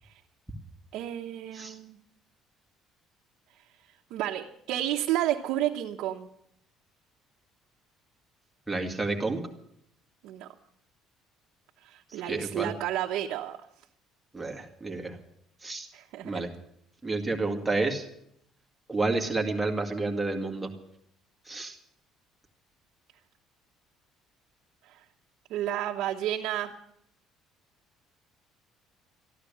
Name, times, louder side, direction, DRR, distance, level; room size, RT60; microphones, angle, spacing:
voice 1, 0.9-2.0 4.1-6.3 10.2-10.5 11.8-13.6 15.9-16.4 24.9-25.0 25.5-26.7, right 12 dB, 75° right, -1 dB, 1.1 m, -31 dB
voice 2, 8.7-9.4 12.3-12.7 14.3-15.2 15.6-15.9 16.2-16.5 17.0-18.1 18.9-20.7 21.5-21.8, right 3 dB, 5° right, 1 dB, 2.0 m, -30 dB
14.0 x 11.5 x 8.6 m, 0.74 s
cardioid pair, 160°, 0 cm